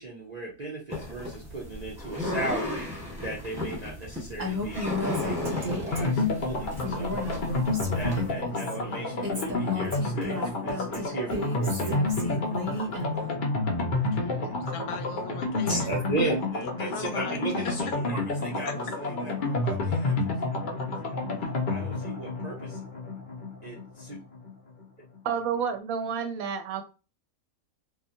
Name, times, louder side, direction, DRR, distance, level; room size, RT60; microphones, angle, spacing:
voice 1, 0.0-2.9 3.2-7.1 7.4-7.7 7.9-12.5 15.7-21.2 21.7-22.8 23.6-24.2, right 2 dB, 60° right, -3 dB, 0.4 m, -36 dB
sound 1, 0.9-8.3, left 2 dB, 5° right, 1.2 m, -35 dB
Female speech woman speaking, 4.4-6.3 6.7-8.7 9.2-13.3, left 2 dB, 30° right, 0.9 m, -33 dB
sound 2, 5.9-24.5 24.8-24.9 25.2-25.3, left 2 dB, 60° left, 0.5 m, -30 dB
voice 2, 14.1-16.0 16.6-17.4 17.6-17.7 18.1-18.2 18.6-18.7, left 5 dB, 85° left, 7 dB, 1.1 m, -39 dB
voice 3, 25.2-26.8, right 7 dB, 75° right, 7 dB, 1.0 m, -30 dB
2.8 x 2.4 x 2.5 m, 0.32 s
omnidirectional pair, 1.6 m